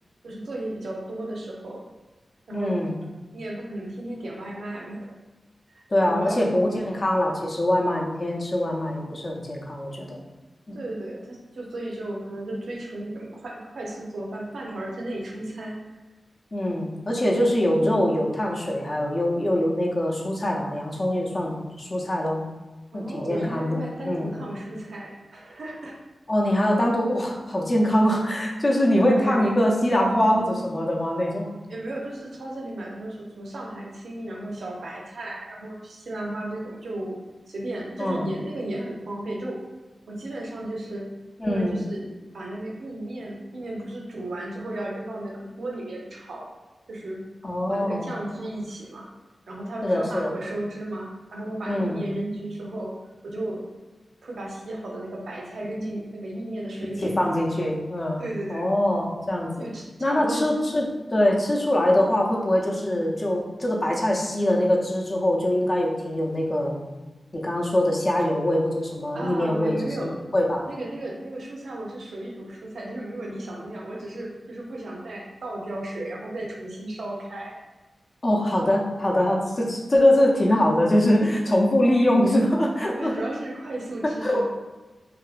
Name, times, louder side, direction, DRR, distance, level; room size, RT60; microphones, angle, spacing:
voice 1, 0.2-1.8 2.5-2.8 3.3-5.1 5.7-6.5 10.7-15.8 22.9-26.0 28.7-29.6 31.7-37.2 37.5-39.6 40.1-41.1 41.4-42.1 42.3-46.5 46.9-47.2 47.7-49.1 49.5-52.9 53.2-53.6 54.2-57.4 58.2-58.7 59.6-60.4 69.1-70.3 70.7-77.6 83.0-84.5, right 1 dB, 80° right, -1 dB, 0.5 m, -34 dB
voice 2, 2.5-2.9 5.9-10.2 10.7-10.8 16.5-22.4 22.9-24.3 26.3-31.5 38.0-38.3 41.4-41.8 47.4-48.1 49.8-50.3 51.7-52.0 57.0-58.2 58.5-59.7 60.0-66.8 67.3-70.6 78.2-83.1 84.2-84.4, left 1 dB, 40° left, -2 dB, 0.5 m, -23 dB
2.8 x 2.5 x 2.4 m, 1.2 s
wide cardioid pair, 85°, 0 cm